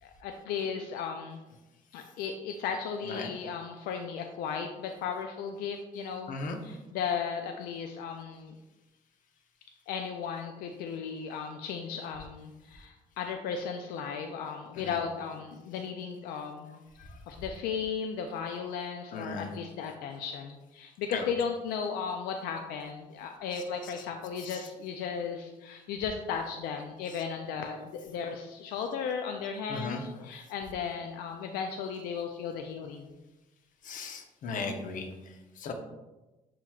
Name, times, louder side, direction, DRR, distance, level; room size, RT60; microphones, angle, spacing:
voice 1, 0.0-1.4 1.9-6.4 6.6-8.6 9.9-16.8 17.3-33.1, left 6 dB, 90° left, 4 dB, 0.4 m, -35 dB
voice 2, 3.0-3.5 6.3-6.6 14.7-15.0 16.3-16.4 17.0-17.2 19.1-19.5 21.1-21.3 23.5-24.1 24.4-24.7 27.1-27.2 29.7-30.1 33.8-35.7, left 3 dB, 60° left, 4 dB, 0.8 m, -38 dB
7.4 x 2.9 x 2.3 m, 1.1 s
cardioid pair, 85°, 15 cm